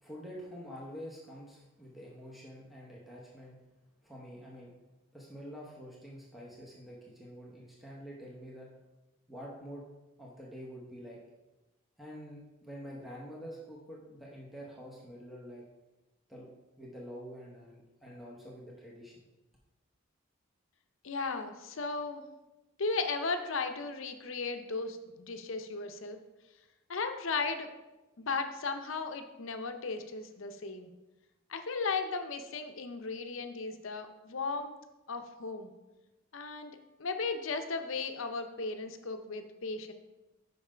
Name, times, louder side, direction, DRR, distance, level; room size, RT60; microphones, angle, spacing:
voice 1, 0.0-3.6 4.0-4.8 5.1-8.7 9.3-9.9 10.2-11.2 12.0-15.7 16.3-16.5 16.8-19.2, equal, ahead, -5 dB, 0.9 m, -47 dB
voice 2, 21.0-22.2 22.8-26.2 26.9-27.7 28.2-30.9 31.5-34.7 35.1-35.7 36.3-39.9, left 4 dB, 70° left, 7 dB, 0.7 m, -36 dB
5.6 x 5.4 x 5.0 m, 1.0 s
head